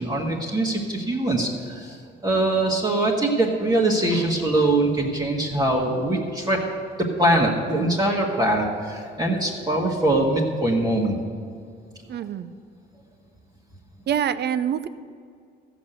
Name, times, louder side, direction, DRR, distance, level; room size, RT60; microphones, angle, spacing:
voice 1, 0.0-6.6 7.0-11.2, right 1 dB, 20° right, -3 dB, 1.7 m, -22 dB
voice 2, 12.1-12.5 14.1-14.9, right 9 dB, 55° right, 14 dB, 0.6 m, -25 dB
14.0 x 6.0 x 8.0 m, 2.2 s
cardioid pair, 90°, 20 cm